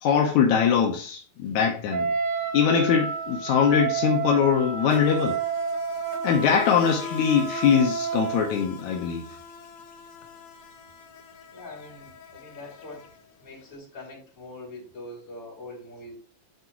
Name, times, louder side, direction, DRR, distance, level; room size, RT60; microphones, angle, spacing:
voice 1, 0.0-2.1 2.5-5.4 6.2-9.3, left 7 dB, 80° left, 2.2 m, -22 dB
Wind instrument woodwind instrument, 1.9-8.5, right 5 dB, 70° right, 1.1 m, -30 dB
Insect, 2.2-2.4 2.6-13.6, left 4 dB, 65° left, 1.6 m, -42 dB
voice 2, 11.5-13.1 13.4-16.2, left 2 dB, 40° left, 4.1 m, -43 dB
10.5 x 4.6 x 3.0 m
omnidirectional pair, 3.3 m